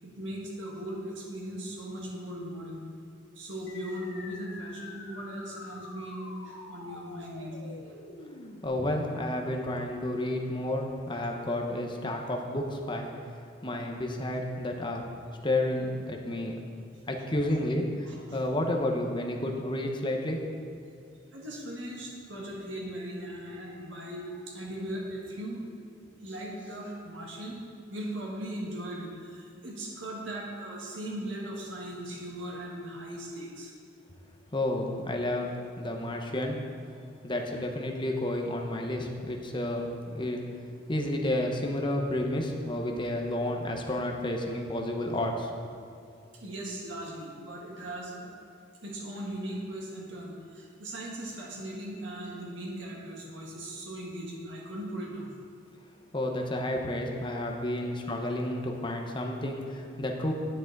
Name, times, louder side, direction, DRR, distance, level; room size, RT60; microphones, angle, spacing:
voice 1, 0.0-2.8 3.4-7.9 16.9-17.0 17.4-17.6 18.1-18.5 21.3-25.7 26.0-27.6 27.9-33.7 46.3-48.3 48.8-55.4, right 1 dB, 70° right, -3 dB, 1.7 m, -39 dB
sound 1, 3.7-8.7, left 2 dB, 75° left, 1.4 m, -46 dB
voice 2, 8.6-13.1 13.6-15.1 15.4-16.5 17.1-17.9 18.3-20.4 34.5-36.6 37.2-39.9 40.1-40.4 40.9-45.5 56.1-60.3, left 1 dB, 25° left, 1 dB, 0.9 m, -31 dB
10.0 x 8.9 x 4.0 m, 2.4 s
head